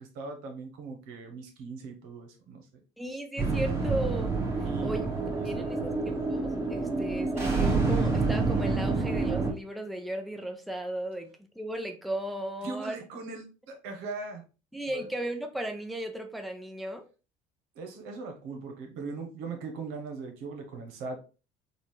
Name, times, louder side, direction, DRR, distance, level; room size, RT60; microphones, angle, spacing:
voice 1, 0.0-2.8 4.6-5.9 6.9-7.0 12.6-14.5 14.9-15.1 17.7-21.2, right 4 dB, 75° right, 4 dB, 1.1 m, -40 dB
voice 2, 3.0-4.3 4.8-5.1 5.4-11.3 11.6-13.0 14.7-17.0, right 1 dB, ahead, 5 dB, 0.6 m, -35 dB
sound 1, 3.4-9.5, right 3 dB, 15° right, 1.5 m, -28 dB
4.1 x 2.5 x 3.2 m, 0.33 s
supercardioid pair, 80°, 17 cm